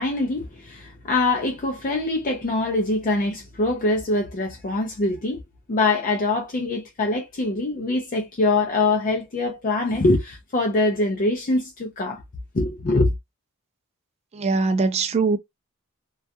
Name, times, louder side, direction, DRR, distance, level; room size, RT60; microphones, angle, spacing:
voice 1, 0.0-5.4 5.7-12.2 12.5-13.1, left 2 dB, 35° left, 0.5 m, -23 dB
voice 2, 14.3-15.4, right 4 dB, 30° right, 0.3 m, -21 dB
2.3 x 2.2 x 2.6 m
head